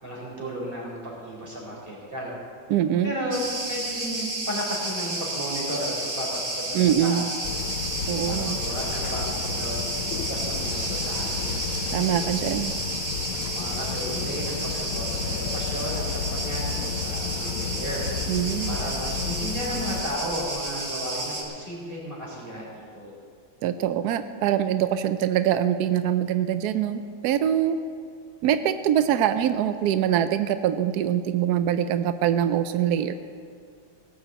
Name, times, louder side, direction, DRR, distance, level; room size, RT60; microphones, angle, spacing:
voice 1, 0.0-2.3 3.0-3.4 3.7-7.2 8.3-11.6 13.5-18.4 18.7-23.1, equal, 25° right, -4 dB, 4.1 m, -34 dB
voice 2, 2.7-3.1 6.7-7.3 8.1-8.6 11.9-12.7 18.3-18.8 23.6-27.8 28.4-33.1, right 10 dB, 85° right, 10 dB, 0.8 m, -24 dB
Cricket, 3.3-21.4, right 2 dB, 45° right, 2.5 m, -31 dB
sound 1, 7.4-20.0, left 8 dB, 80° left, 1.5 m, -32 dB
17.5 x 7.1 x 7.8 m, 2.2 s
omnidirectional pair, 2.2 m